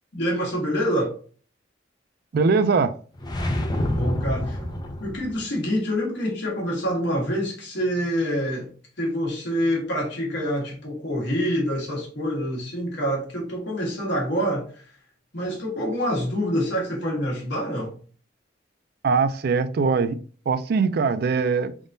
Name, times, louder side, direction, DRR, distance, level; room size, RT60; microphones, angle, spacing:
voice 1, 0.1-1.1 3.7-4.6 5.0-8.7 9.0-14.6 15.3-17.9, equal, 65° left, 1.5 m, -26 dB
voice 2, 2.3-2.9 19.0-20.2 20.5-21.9, right 4 dB, 55° right, 0.4 m, -21 dB
sound 1, 3.2-5.4, left 1 dB, 25° left, 0.5 m, -27 dB
3.9 x 3.6 x 2.6 m
head